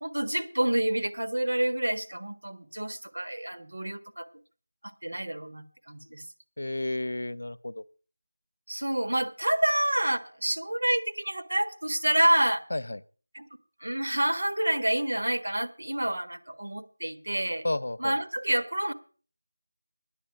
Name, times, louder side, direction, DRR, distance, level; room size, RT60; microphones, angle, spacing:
voice 1, 0.0-4.3 4.8-6.2 8.7-12.6 13.3-13.5 13.8-17.7 18.0-18.9, right 1 dB, 85° right, 7 dB, 1.4 m, -28 dB
voice 2, 6.6-7.8 12.7-13.0 17.6-18.2, left 2 dB, 60° left, 18 dB, 0.7 m, -31 dB
10.0 x 7.5 x 9.0 m, 0.41 s
figure-of-eight pair, 175°, 0 cm